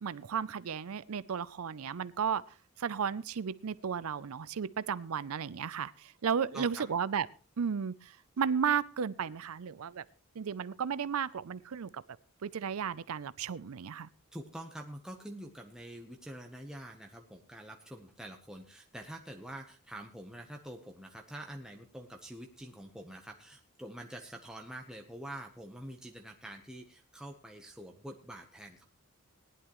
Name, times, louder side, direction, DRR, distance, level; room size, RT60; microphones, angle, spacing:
voice 1, 0.0-2.4 2.8-7.3 7.6-10.0 10.4-12.0 12.4-14.1, right 7 dB, 75° right, 18 dB, 0.5 m, -34 dB
voice 2, 6.5-6.8 14.3-28.8, right 1 dB, 5° right, 2 dB, 0.9 m, -46 dB
19.0 x 11.0 x 3.1 m, 0.37 s
head